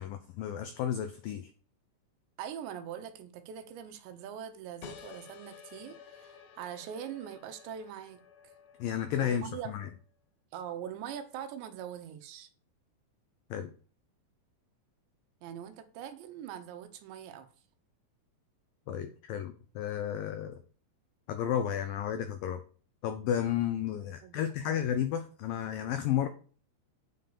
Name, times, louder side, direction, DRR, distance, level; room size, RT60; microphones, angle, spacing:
voice 1, 0.0-1.5 8.8-9.9 13.5-13.7 18.9-20.6 21.3-22.6 23.0-26.3, left 10 dB, 85° left, 2.0 m, -32 dB
voice 2, 2.4-8.2 9.2-9.9 10.5-12.5 15.4-17.5 24.2-24.9, right 9 dB, 80° right, 3.4 m, -42 dB
sound 1, 4.8-10.0, left 7 dB, 70° left, 2.4 m, -53 dB
9.6 x 5.9 x 6.9 m
omnidirectional pair, 5.1 m